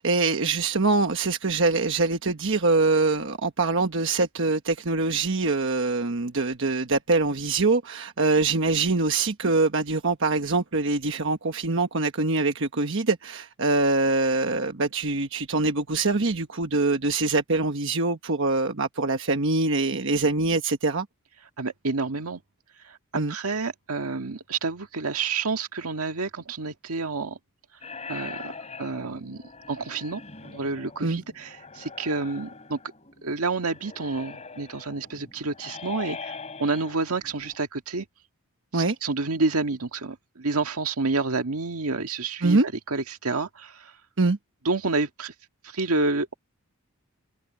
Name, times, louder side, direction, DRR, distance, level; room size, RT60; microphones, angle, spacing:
voice 1, 0.0-21.1 23.2-23.3 31.0-31.2 38.7-39.0 42.4-42.7 44.2-44.4, right 3 dB, 60° right, 1.2 m, -24 dB
voice 2, 21.6-22.4 22.8-23.0 23.3-27.4 28.1-28.5 28.8-32.8 33.2-38.1 38.7-42.6 42.9-43.9 44.7-45.3 45.6-46.3, right 3 dB, 80° right, 1.8 m, -29 dB
sound 1, 27.8-37.6, left 4 dB, 30° left, 3.8 m, -42 dB
head